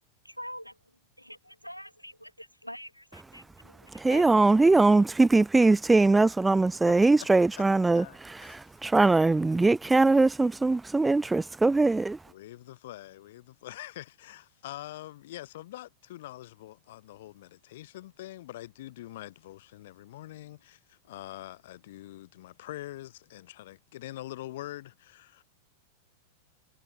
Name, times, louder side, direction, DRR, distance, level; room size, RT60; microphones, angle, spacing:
voice 1, 0.2-4.4, equal, 90° left, 5.5 m, -45 dB
voice 2, 3.9-12.2, right 3 dB, 10° right, 0.6 m, -22 dB
voice 3, 8.0-8.8 12.3-25.4, left 15 dB, 55° left, 1.7 m, -44 dB
figure-of-eight pair, 90°, 0 cm